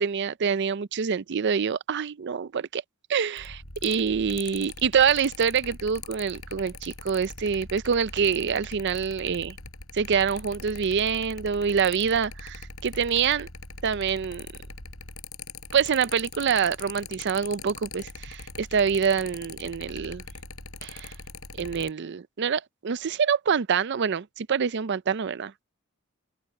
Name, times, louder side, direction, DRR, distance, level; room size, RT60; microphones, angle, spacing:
voice 1, 0.0-2.8 3.1-9.6 9.9-13.5 13.8-14.5 15.7-20.2 20.8-21.1 21.6-25.6, right 6 dB, 55° right, 0.5 m, -26 dB
Mechanical fan, 3.4-21.9, left 4 dB, 90° left, 5.9 m, -42 dB
head